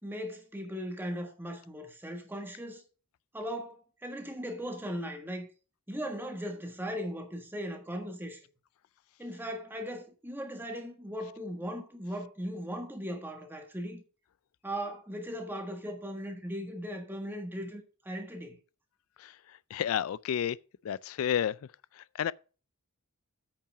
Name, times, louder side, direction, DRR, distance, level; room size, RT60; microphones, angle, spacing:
voice 1, 0.0-2.8 3.3-5.5 5.9-8.4 9.2-14.0 14.6-18.6, equal, 10° right, 1.6 m, -38 dB
voice 2, 19.7-20.6 20.9-21.5 22.2-22.3, left 9 dB, 70° left, 0.3 m, -30 dB
8.7 x 5.8 x 5.7 m
head